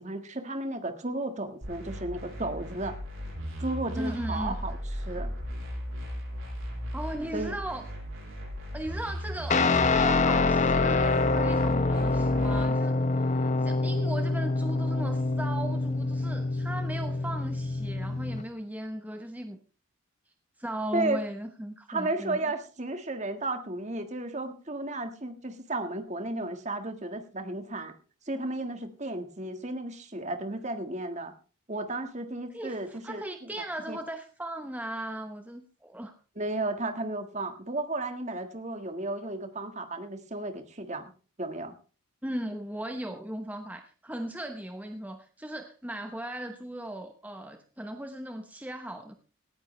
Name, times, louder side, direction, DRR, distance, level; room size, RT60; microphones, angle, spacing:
voice 1, 0.0-2.9 3.6-4.8 5.0-5.3 7.3-7.6 20.9-21.3 21.9-27.9 28.3-31.3 31.7-33.5 33.9-34.0 36.3-41.1 41.4-41.7, right 2 dB, 30° right, 7 dB, 1.6 m, -33 dB
sound 1, 1.6-12.6, equal, 65° right, 7.3 m, -36 dB
voice 2, 3.9-4.6 6.9-7.8 8.7-19.6 20.6-22.4 32.5-36.1 42.2-49.1, right 1 dB, 5° right, 5 dB, 1.0 m, -37 dB
Guitar, 9.5-18.4, left 3 dB, 35° left, 0.8 m, -26 dB
18.0 x 14.5 x 3.3 m, 0.36 s
head